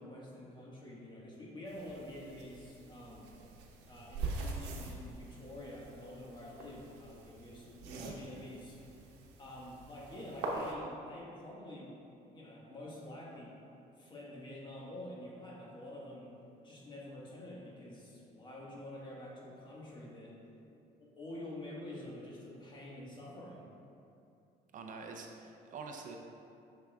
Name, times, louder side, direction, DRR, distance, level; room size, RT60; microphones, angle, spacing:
voice 1, 0.0-3.3 3.8-8.8 9.4-12.0 12.3-13.5 14.0-16.3 16.6-20.4 21.0-23.7, left 1 dB, 30° left, -4 dB, 1.4 m, -48 dB
sound 1, 1.7-10.7, right 3 dB, 90° right, 0.9 m, -44 dB
voice 2, 7.9-8.2 24.7-26.2, right 4 dB, 50° right, 2 dB, 0.5 m, -46 dB
7.6 x 6.0 x 2.3 m, 2.7 s
cardioid pair, 110°, 17 cm